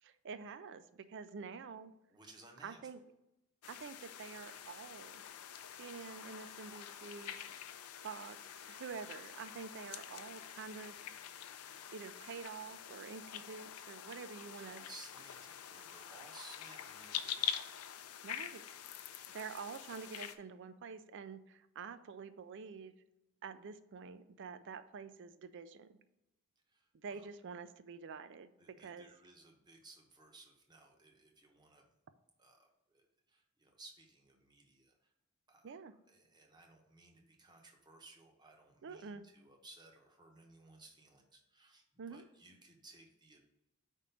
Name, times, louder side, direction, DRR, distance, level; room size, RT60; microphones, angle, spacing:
voice 1, 0.0-1.9 2.6-3.0 3.7-5.2 5.8-7.6 8.0-8.4 8.7-11.0 11.9-14.8 18.2-18.6 19.3-22.9 23.4-26.0 27.0-29.1 35.6-35.9 38.8-39.2 42.0-42.2, right 5 dB, 55° right, 12 dB, 0.4 m, -48 dB
voice 2, 2.1-2.8 14.6-17.8 26.7-27.3 28.6-31.8 32.4-35.1 35.5-35.7 36.1-43.4, right 2 dB, 20° right, 2 dB, 0.9 m, -59 dB
sound 1, 3.6-20.4, left 10 dB, 90° left, 0.5 m, -46 dB
5.0 x 3.6 x 5.6 m, 0.91 s
head